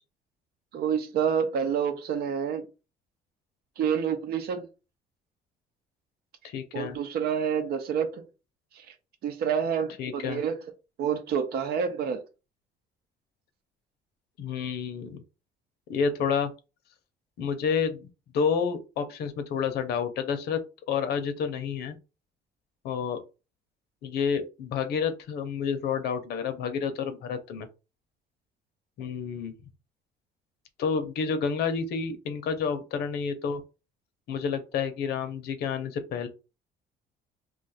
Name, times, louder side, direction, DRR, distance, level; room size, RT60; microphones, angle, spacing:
voice 1, 0.7-2.6 3.8-4.7 6.7-8.2 8.8-8.9 9.2-10.6 11.0-12.2, right 7 dB, 65° right, 0.7 m, -28 dB
voice 2, 6.4-7.0 10.0-10.4 14.4-15.2 15.9-16.5 17.4-18.1 18.3-20.6 20.9-22.0 22.8-23.2 24.0-27.7 29.0-29.5 30.8-33.6 34.3-36.3, left 6 dB, 75° left, 0.7 m, -29 dB
2.5 x 2.4 x 4.0 m
cardioid pair, 110°, 17 cm